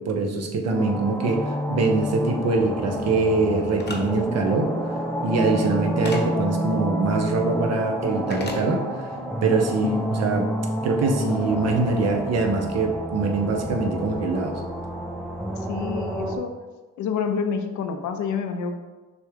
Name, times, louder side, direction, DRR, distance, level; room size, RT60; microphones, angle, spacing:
voice 1, 0.1-1.4 1.7-4.7 5.2-8.8 9.4-9.9 10.2-10.5 10.8-14.5, right 3 dB, 55° right, 3 dB, 0.8 m, -23 dB
sound 1, 0.7-16.4, equal, ahead, 0.5 m, -29 dB
sound 2, 3.8-4.0 6.0-6.2 8.3-8.6, left 2 dB, 35° left, 0.9 m, -34 dB
voice 2, 5.4-5.7 9.8-10.1 15.5-16.5 17.0-18.7, left 6 dB, 75° left, 6 dB, 0.6 m, -28 dB
6.2 x 2.3 x 3.5 m, 1.3 s
cardioid pair, 90°, 30 cm